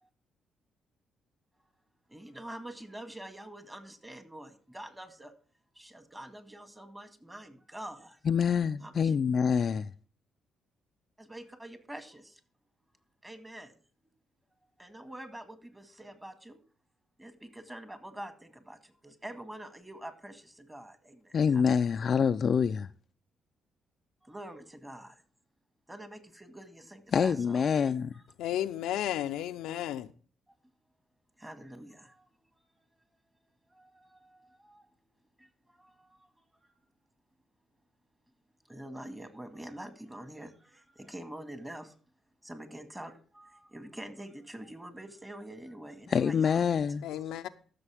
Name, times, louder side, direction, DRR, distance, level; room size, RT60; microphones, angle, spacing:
voice 1, 2.1-5.3 5.7-8.2 8.8-9.2 11.2-12.4 13.2-13.8 14.8-16.6 17.2-21.6 24.2-25.2 25.9-27.6 31.4-32.3 33.7-35.1 35.4-36.3 36.5-36.7 38.7-41.9 42.4-46.6 47.1-47.3, right 1 dB, 10° right, 2.0 m, -46 dB
voice 2, 8.3-9.9 21.3-22.9 27.1-28.1 46.1-47.0, left 6 dB, 50° left, 0.5 m, -26 dB
voice 3, 28.4-30.1 47.0-47.5, left 12 dB, 90° left, 0.7 m, -33 dB
14.0 x 6.7 x 3.5 m
cardioid pair, 90°, 0 cm